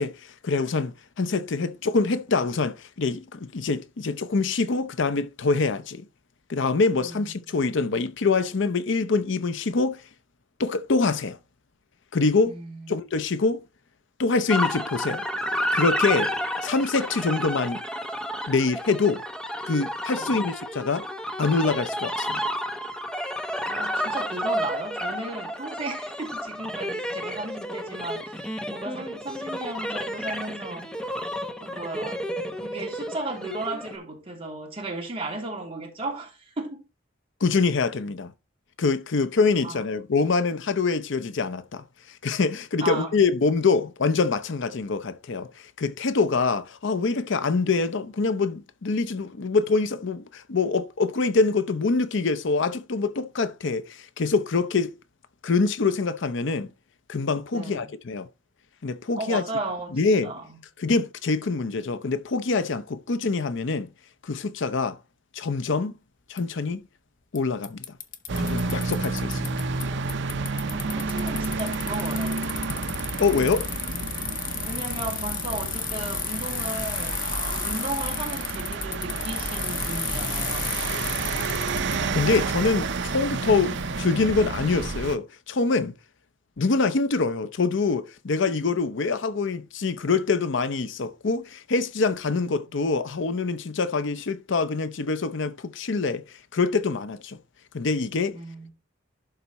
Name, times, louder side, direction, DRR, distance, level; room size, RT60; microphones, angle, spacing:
voice 1, 0.0-6.1 6.5-10.0 10.6-11.4 12.1-12.6 12.9-13.6 14.2-15.3 15.7-16.3 16.6-17.8 18.5-19.2 19.7-21.0 21.4-22.4 37.4-38.3 38.8-55.0 55.4-56.7 57.1-58.3 58.8-59.4 60.0-60.3 60.8-63.9 64.2-65.0 65.3-65.9 66.3-66.8 67.3-67.8 68.4-69.5 73.2-73.6 82.1-85.9 86.6-97.4 97.7-98.4, left 4 dB, 65° left, 0.6 m, -25 dB
voice 2, 7.0-7.3 12.4-13.0 20.2-20.4 23.7-31.1 31.6-32.2 32.5-36.8 39.6-39.8 42.8-43.1 57.5-57.9 59.2-60.6 70.7-72.4 73.4-73.5 74.6-77.2 77.5-81.0 92.4-92.5 98.3-98.7, right 2 dB, 30° right, 3.2 m, -35 dB
sound 1, 14.5-33.9, equal, 5° left, 0.9 m, -31 dB
Bicycle, 66.4-66.5 67.4-67.5 67.6-69.8 70.1-82.0, left 8 dB, 45° left, 1.0 m, -33 dB
sound 2, 68.3-85.2, right 3 dB, 65° right, 0.7 m, -30 dB
11.5 x 4.1 x 4.1 m
head